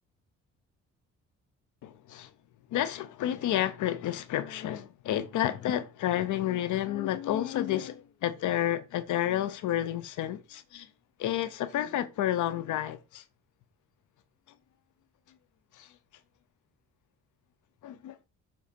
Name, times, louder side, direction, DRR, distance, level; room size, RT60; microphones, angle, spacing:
voice 1, 1.8-2.3 2.7-10.9 11.2-13.2 15.7-15.9 17.8-18.3, left 12 dB, 75° left, 0.7 m, -30 dB
7.2 x 4.1 x 4.3 m
cardioid pair, 90°, 30 cm